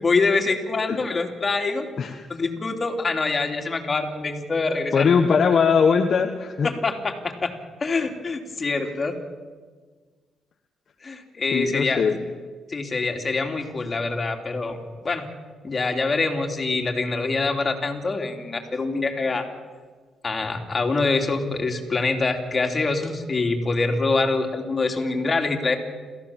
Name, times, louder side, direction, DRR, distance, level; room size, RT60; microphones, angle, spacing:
voice 1, 0.0-1.9 2.3-5.1 6.6-7.5 7.8-9.1 11.0-12.0 12.7-14.8 15.0-15.3 15.6-19.5 20.2-25.8, left 3 dB, 35° left, 4 dB, 3.1 m, -25 dB
voice 2, 4.9-6.7 11.5-12.2, left 6 dB, 50° left, 4 dB, 1.4 m, -20 dB
28.5 x 15.0 x 7.3 m, 1.5 s
cardioid pair, 90°, 0 cm